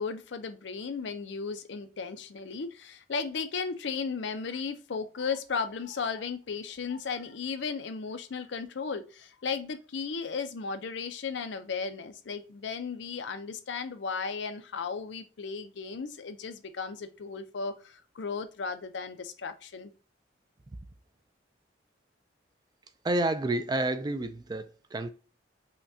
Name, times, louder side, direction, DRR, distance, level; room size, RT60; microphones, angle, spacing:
voice 1, 0.0-19.9, left 5 dB, 65° left, 0.5 m, -35 dB
voice 2, 23.0-25.1, right 2 dB, 20° right, 0.3 m, -30 dB
5.6 x 2.3 x 2.6 m
head